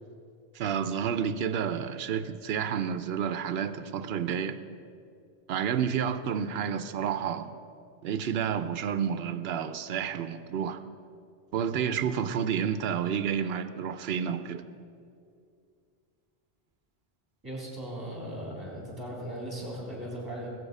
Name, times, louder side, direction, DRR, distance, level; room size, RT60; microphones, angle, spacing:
voice 1, 0.5-4.6 5.5-7.5 8.0-10.8 11.5-14.6, right 7 dB, 75° right, 12 dB, 0.9 m, -30 dB
voice 2, 17.4-20.5, right 1 dB, 20° right, -3 dB, 3.7 m, -38 dB
19.5 x 8.0 x 5.4 m, 2.4 s
omnidirectional pair, 1.1 m